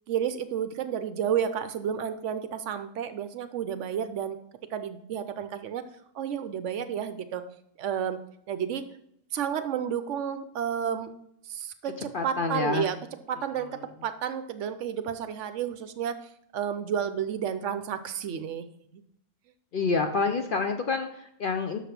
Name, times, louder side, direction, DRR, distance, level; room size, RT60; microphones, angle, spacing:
voice 1, 0.1-4.4 4.7-5.8 6.1-7.4 7.8-8.2 8.5-8.8 9.3-11.1 11.5-13.0 13.3-16.2 16.5-18.7 18.9-19.0, right 8 dB, 70° right, 11 dB, 0.9 m, -31 dB
voice 2, 12.1-12.9 19.7-21.8, left 4 dB, 55° left, 6 dB, 0.6 m, -27 dB
6.5 x 5.2 x 5.8 m, 0.74 s
omnidirectional pair, 1.4 m